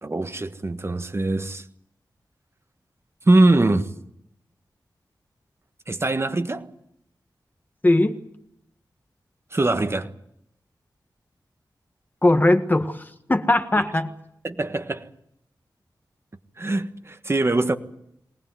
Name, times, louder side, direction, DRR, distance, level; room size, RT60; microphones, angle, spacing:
voice 1, 0.0-1.6 3.3-3.9 5.9-6.7 9.5-10.1 14.4-15.1 16.6-17.8, right 2 dB, 35° right, 1.6 m, -22 dB
voice 2, 7.8-8.2 12.2-14.1, left 1 dB, 25° left, 1.7 m, -20 dB
23.5 x 19.0 x 9.4 m
wide cardioid pair, 95°, 8 cm